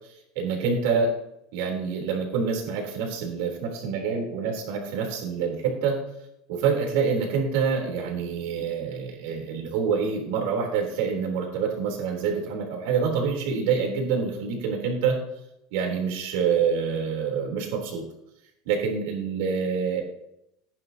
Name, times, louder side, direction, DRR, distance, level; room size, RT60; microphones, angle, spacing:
voice 1, 0.4-1.1 1.5-6.0 6.5-15.2 15.7-18.0 18.7-20.0, right 6 dB, 70° right, 1 dB, 3.7 m, -26 dB
15.0 x 10.5 x 2.9 m, 0.83 s
cardioid pair, 175°, 0 cm